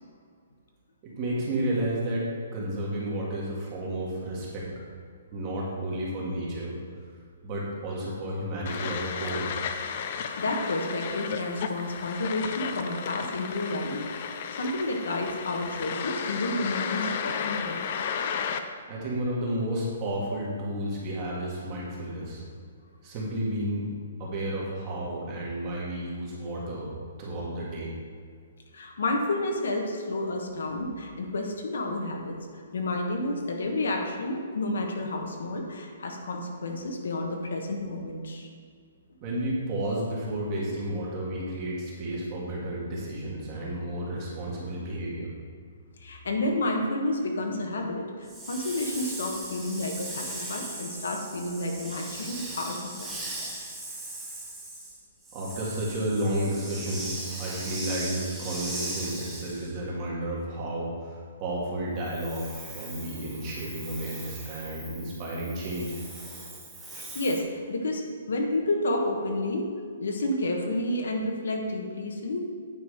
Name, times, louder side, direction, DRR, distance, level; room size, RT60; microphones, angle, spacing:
voice 1, 1.0-2.3 2.5-4.7 5.3-6.7 7.4-9.5 18.9-22.4 23.0-23.9 24.2-26.9 27.2-27.9 39.2-45.3 55.3-66.0, right 1 dB, 25° right, -5 dB, 1.8 m, -32 dB
sound 1, 8.7-18.6, left 7 dB, 35° left, 0.5 m, -33 dB
voice 2, 10.1-14.1 14.6-18.1 28.7-32.4 32.7-38.5 46.0-53.2 66.9-67.4 67.7-68.0 68.3-69.7 70.0-72.4, left 2 dB, 80° left, 2 dB, 1.4 m, -30 dB
Hiss, 48.2-59.7 62.0-67.4, right 2 dB, 5° right, 0.8 m, -39 dB
9.1 x 4.9 x 5.0 m, 2.1 s
hypercardioid pair, 175°, 0 cm